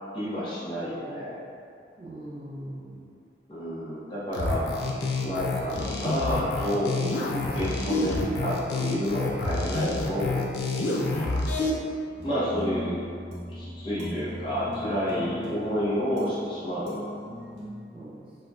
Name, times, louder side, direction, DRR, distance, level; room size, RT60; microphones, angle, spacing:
voice 1, 0.1-1.3 3.5-4.7 5.2-10.4 12.2-13.0 13.5-17.1, equal, 25° left, -11 dB, 0.8 m, -29 dB
voice 2, 2.0-3.1 10.9-11.6 17.9-18.3, right 1 dB, 30° right, -8 dB, 0.5 m, -41 dB
sound 1, 4.3-11.7, left 2 dB, 90° left, 0.4 m, -28 dB
sound 2, 12.2-17.7, equal, 75° right, 0.9 m, -38 dB
3.9 x 2.1 x 2.4 m, 2.4 s
head